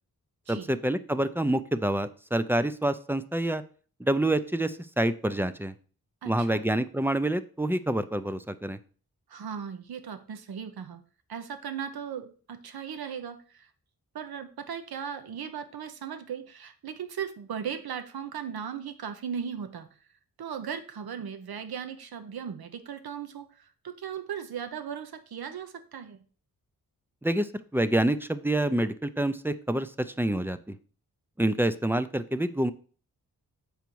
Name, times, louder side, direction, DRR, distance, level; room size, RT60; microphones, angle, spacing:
voice 1, 0.5-3.6 4.0-5.7 6.2-8.8 27.2-30.8 31.4-32.7, right 1 dB, 5° right, 13 dB, 0.4 m, -27 dB
voice 2, 6.2-6.6 9.3-11.0 11.3-13.7 14.1-19.9 20.4-26.2, right 7 dB, 85° right, 9 dB, 0.9 m, -37 dB
7.0 x 5.1 x 4.6 m, 0.41 s
wide cardioid pair, 120°, 36 cm